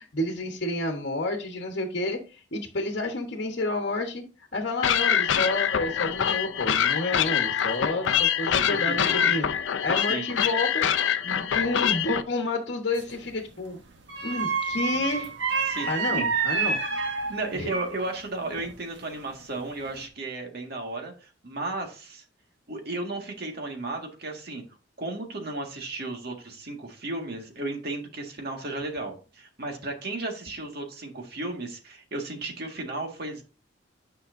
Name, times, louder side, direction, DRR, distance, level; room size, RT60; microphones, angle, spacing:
voice 1, 0.0-4.2 4.5-9.5 9.8-10.9 11.2-13.8 14.2-15.3 15.8-16.8 17.5-17.7, left 2 dB, 60° left, 2 dB, 1.1 m, -30 dB
sound 1, 4.8-12.2, left 8 dB, 85° left, 0.5 m, -25 dB
voice 2, 8.7-9.3 10.1-10.3 15.7-16.3 17.3-22.2 22.7-24.6 25.0-33.4, right 2 dB, 60° right, 3 dB, 1.8 m, -34 dB
sound 2, 12.9-13.3 14.1-18.1 18.5-19.4 19.8-20.0, right 5 dB, 75° right, 1.5 m, -29 dB
9.4 x 5.7 x 2.6 m, 0.34 s
head